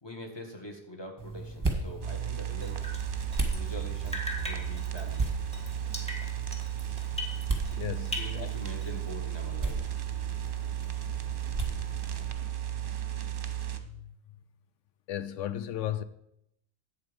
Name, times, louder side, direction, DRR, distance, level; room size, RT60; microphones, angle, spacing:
voice 1, 0.0-2.8 3.5-5.4 8.1-9.9, left 1 dB, 20° left, 1.7 m, -44 dB
sound 1, 1.2-12.3, right 2 dB, 15° right, 1.4 m, -37 dB
sound 2, 2.0-13.8, right 12 dB, 50° right, 1.0 m, -34 dB
Drip, 2.6-7.8 8.1-9.1, left 1 dB, 5° left, 1.6 m, -40 dB
voice 2, 7.7-8.5 13.8-14.1 15.1-16.0, left 11 dB, 75° left, 1.0 m, -35 dB
11.0 x 8.1 x 5.2 m
omnidirectional pair, 1.3 m